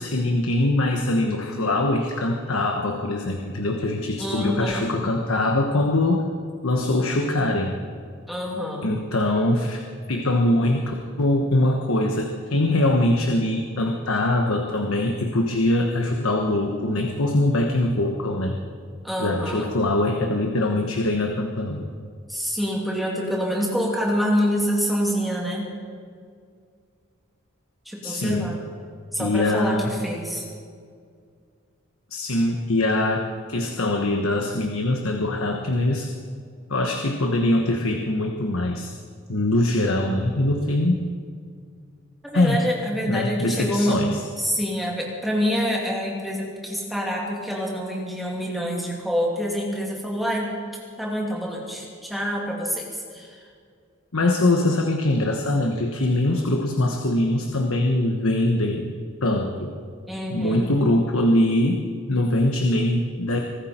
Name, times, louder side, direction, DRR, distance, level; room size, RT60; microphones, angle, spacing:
voice 1, 0.0-6.3 6.6-7.7 8.8-9.8 10.1-18.6 19.2-21.9 28.0-28.5 29.2-29.9 32.1-36.1 36.7-38.9 39.3-41.1 42.3-42.7 43.1-44.2 54.1-58.9 59.2-59.7 60.3-61.8 62.1-63.4, left 1 dB, 85° left, 2 dB, 1.2 m, -22 dB
voice 2, 4.2-4.9 8.3-9.0 19.0-19.7 22.3-25.7 27.9-28.6 29.1-30.5 42.3-44.0 44.4-50.5 51.0-53.4 60.1-60.7, equal, ahead, -3 dB, 2.7 m, -26 dB
25.0 x 13.0 x 4.4 m, 2.2 s
head